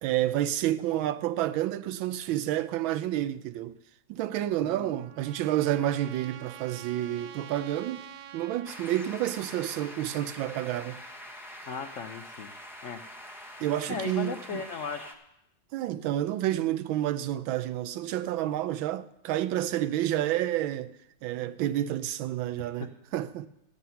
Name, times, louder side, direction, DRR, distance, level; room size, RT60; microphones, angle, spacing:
voice 1, 0.0-3.8 4.1-8.0 8.3-11.0 13.6-14.6 15.7-21.0 21.2-23.5, right 13 dB, 85° right, 1.4 m, -29 dB
Trumpet, 4.4-8.9, right 11 dB, 70° right, 1.1 m, -47 dB
voice 2, 4.6-5.0 11.7-12.5 12.8-13.0 13.9-15.2 22.6-22.9, left 6 dB, 80° left, 0.6 m, -37 dB
sound 1, 8.6-15.1, equal, ahead, 0.6 m, -45 dB
13.5 x 9.2 x 5.6 m
omnidirectional pair, 2.1 m